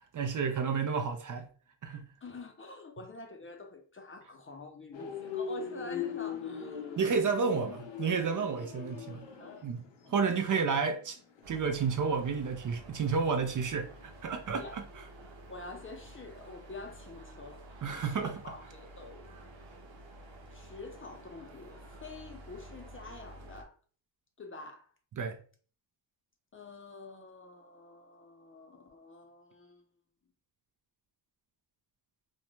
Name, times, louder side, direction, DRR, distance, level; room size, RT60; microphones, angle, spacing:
voice 1, 0.1-1.5 1.8-2.0 7.0-9.2 9.6-9.8 10.1-11.2 11.5-14.8 17.8-18.4 25.2-25.4, right 5 dB, 45° right, 0.5 m, -31 dB
voice 2, 2.2-7.3 9.4-9.7 14.5-14.8 15.5-19.3 20.5-23.8 24.4-24.9 26.5-29.9, left 3 dB, 30° left, 0.5 m, -47 dB
sound 1, 4.9-14.0 14.3-14.6, left 6 dB, 80° left, 0.7 m, -41 dB
sound 2, 11.4-23.6, right 1 dB, 85° right, 0.7 m, -51 dB
2.5 x 2.2 x 3.0 m
cardioid pair, 65°, 44 cm